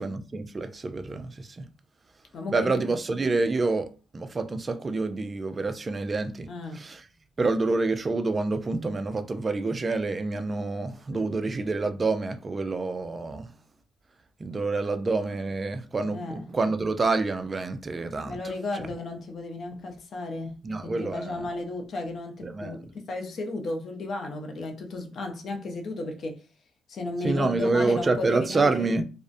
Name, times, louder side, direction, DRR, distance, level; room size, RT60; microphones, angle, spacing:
voice 1, 0.0-1.7 2.5-7.0 7.4-13.5 14.4-18.4 18.7-18.8 20.6-21.5 22.4-22.8 27.2-29.0, right 3 dB, 30° right, 0.3 m, -27 dB
voice 2, 2.3-2.8 6.4-6.8 11.1-11.6 16.1-16.4 18.2-26.4 26.9-28.9, left 2 dB, 55° left, 0.5 m, -34 dB
2.5 x 2.0 x 2.5 m
cardioid pair, 90°, 0 cm